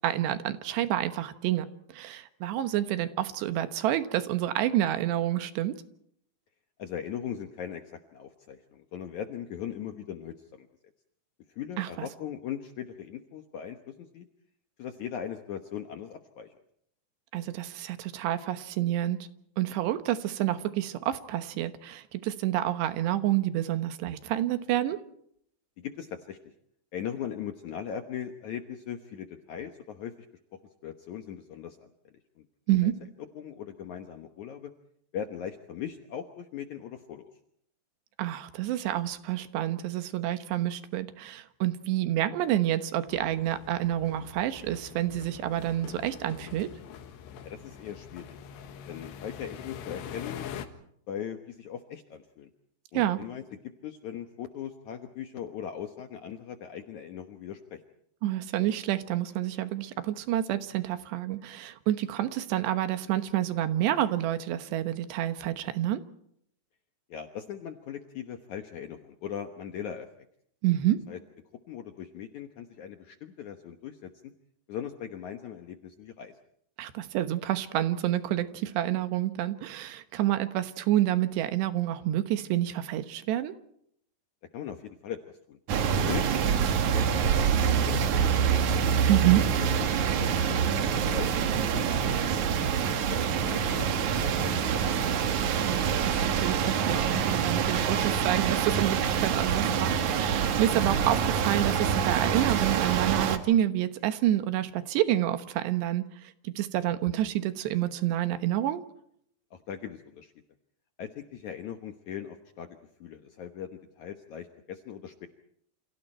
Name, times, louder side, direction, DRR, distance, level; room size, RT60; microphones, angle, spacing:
voice 1, 0.0-1.7 1.9-5.7 11.8-11.9 17.3-19.2 19.6-25.0 32.7-32.9 38.2-46.7 52.9-53.2 58.2-66.0 70.6-71.0 76.8-83.5 89.1-89.4 95.6-108.8, right 13 dB, 85° right, 10 dB, 3.4 m, -28 dB
voice 2, 6.8-10.7 11.5-14.3 14.8-16.5 25.8-26.5 26.9-30.1 30.8-32.5 32.8-32.9 33.3-34.7 35.1-37.3 47.4-48.4 48.9-50.5 51.1-52.5 52.9-53.4 53.8-57.8 67.1-70.1 71.1-71.2 71.7-74.3 74.7-76.4 84.5-85.6 85.9-88.6 89.0-90.6 91.0-95.4 109.5-110.3 111.0-112.7 113.0-115.3, left 9 dB, 70° left, 6 dB, 1.9 m, -40 dB
sound 1, 43.1-50.7, left 9 dB, 85° left, 3.7 m, -44 dB
sound 2, 85.7-103.4, right 7 dB, 60° right, 2.2 m, -26 dB
29.0 x 28.0 x 4.5 m, 0.69 s
omnidirectional pair, 4.9 m